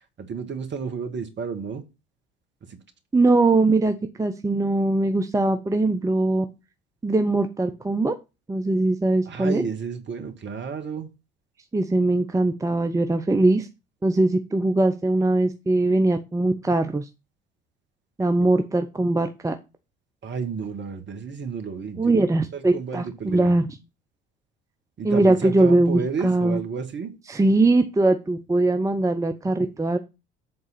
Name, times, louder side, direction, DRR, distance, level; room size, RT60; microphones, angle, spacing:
voice 1, 0.2-1.8 2.7-2.8 9.2-11.1 18.4-18.5 20.2-22.2 22.5-23.6 25.0-27.1, right 6 dB, 35° right, 1.7 m, -31 dB
voice 2, 3.1-6.4 7.0-8.1 8.5-9.6 11.7-13.7 14.0-17.1 18.2-19.5 22.0-23.7 25.0-26.6 27.3-30.0, right 2 dB, 10° right, 0.8 m, -21 dB
7.8 x 3.9 x 5.8 m
figure-of-eight pair, 60°, 32 cm